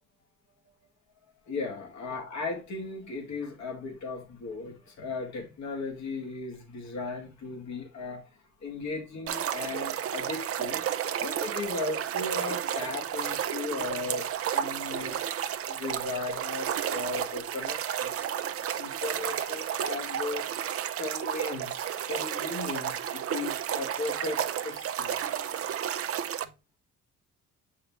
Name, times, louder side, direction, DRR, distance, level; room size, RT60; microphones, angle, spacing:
voice 1, 1.5-8.2 8.6-10.8 11.2-14.3 14.5-15.2 15.6-18.3 18.8-20.4 21.0-25.2, left 3 dB, 65° left, 2.0 m, -36 dB
sound 1, 9.3-26.4, right 9 dB, 50° right, 0.6 m, -32 dB
7.0 x 4.8 x 3.1 m
cardioid pair, 90°, 30 cm